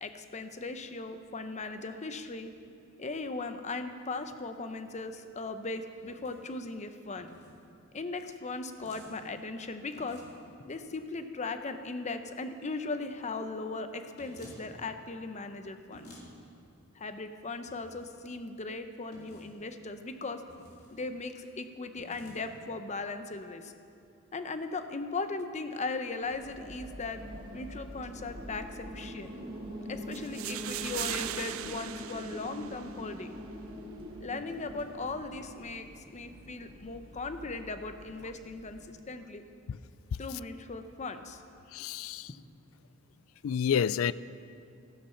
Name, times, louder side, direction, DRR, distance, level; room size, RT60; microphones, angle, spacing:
voice 1, 0.0-2.5 3.0-7.3 7.9-10.2 10.7-16.1 16.9-20.4 20.9-23.7 24.3-27.2 27.5-29.3 29.9-33.3 34.2-39.4 40.2-41.4, left 3 dB, 35° left, 8 dB, 0.8 m, -38 dB
sound 1, 6.0-6.4 7.2-7.5 8.8-9.1 9.9-10.4 14.2-14.6 15.9-16.3 17.7-18.1 19.1-19.5 20.5-21.0 21.9-22.4, equal, 55° left, 3.7 m, -52 dB
sound 2, 26.2-38.9, equal, 25° right, 2.3 m, -44 dB
sound 3, 30.1-33.1, right 12 dB, 75° right, 0.5 m, -39 dB
voice 2, 41.7-42.3 43.4-44.1, left 8 dB, 70° left, 18 dB, 0.3 m, -29 dB
15.0 x 13.0 x 5.7 m, 2.5 s
head